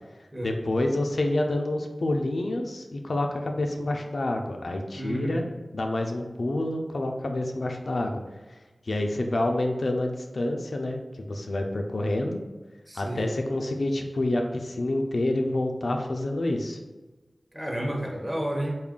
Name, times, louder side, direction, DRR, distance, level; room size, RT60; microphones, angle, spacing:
voice 1, 0.4-5.5 5.7-8.2 8.9-12.4 13.0-16.8, left 1 dB, 70° left, 3 dB, 0.3 m, -28 dB
voice 2, 4.9-5.4 12.9-13.3 17.5-18.8, right 1 dB, 15° right, 0 dB, 0.8 m, -31 dB
3.7 x 2.4 x 3.6 m, 1.2 s
wide cardioid pair, 50°, 0 cm